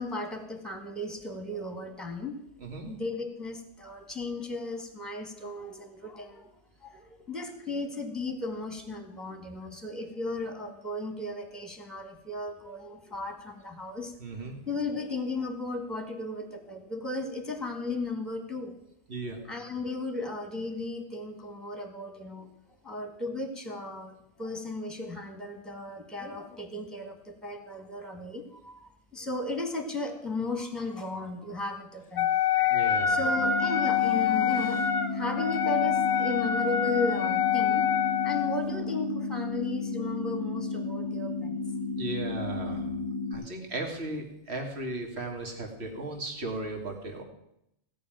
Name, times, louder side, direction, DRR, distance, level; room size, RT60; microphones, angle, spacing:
voice 1, 0.0-2.4 2.9-6.5 6.8-14.1 14.7-18.7 19.4-22.5 22.8-37.9 38.2-41.6, left 2 dB, ahead, 5 dB, 1.7 m, -35 dB
voice 2, 2.6-2.9 14.2-14.6 19.1-19.4 32.6-33.2 41.9-42.9 43.3-47.2, right 2 dB, 60° right, 2 dB, 2.3 m, -36 dB
Wind instrument woodwind instrument, 32.2-38.6, left 8 dB, 60° left, 1.0 m, -26 dB
sound 1, 33.4-43.4, left 3 dB, 20° right, 2.5 m, -33 dB
16.5 x 5.5 x 8.9 m, 0.79 s
omnidirectional pair, 1.2 m